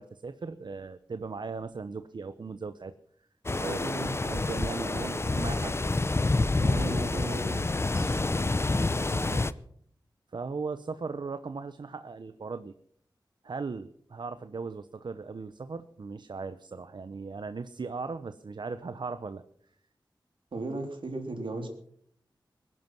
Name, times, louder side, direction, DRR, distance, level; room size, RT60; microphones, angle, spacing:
voice 1, 0.0-2.9 3.6-5.8 9.1-9.4 10.3-12.7 13.4-19.4, right 4 dB, 65° right, 11 dB, 0.8 m, -38 dB
sound 1, 3.4-9.5, left 2 dB, 30° left, 0.7 m, -28 dB
voice 2, 3.6-4.2 6.5-7.6 7.9-8.2 20.5-21.7, right 2 dB, 80° right, 4 dB, 3.7 m, -36 dB
21.0 x 11.0 x 6.1 m, 0.64 s
wide cardioid pair, 80°, 8 cm